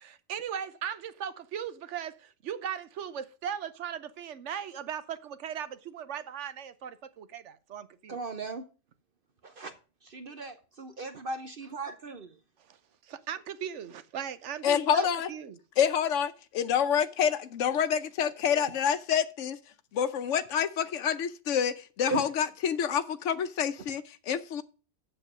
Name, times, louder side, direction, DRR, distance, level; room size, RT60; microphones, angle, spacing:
voice 1, 0.0-8.2 13.1-15.6, right 8 dB, 75° right, 1.1 m, -38 dB
voice 2, 8.1-8.6 9.4-9.7 10.0-12.3 22.1-22.2, right 3 dB, 50° right, 0.9 m, -37 dB
voice 3, 14.6-15.3 15.8-19.6 19.9-24.6, left 8 dB, 80° left, 1.1 m, -27 dB
7.7 x 6.9 x 5.3 m
omnidirectional pair, 1.3 m